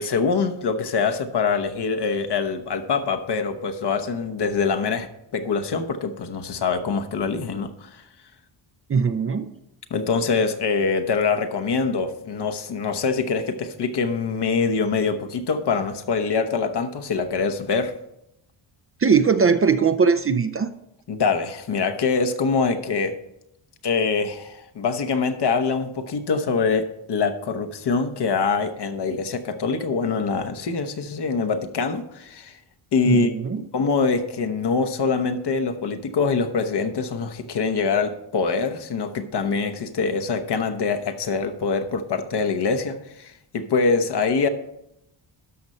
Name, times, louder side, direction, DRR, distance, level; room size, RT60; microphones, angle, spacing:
voice 1, 0.0-5.1 5.3-8.0 9.9-17.9 21.1-23.2 23.8-32.6 32.9-33.3 33.6-44.5, left 5 dB, 55° left, 7 dB, 1.1 m, -24 dB
voice 2, 8.9-9.5 19.0-20.7 33.0-33.6, right 5 dB, 30° right, 9 dB, 0.5 m, -20 dB
12.5 x 5.3 x 4.3 m, 0.83 s
cardioid pair, 80°, 48 cm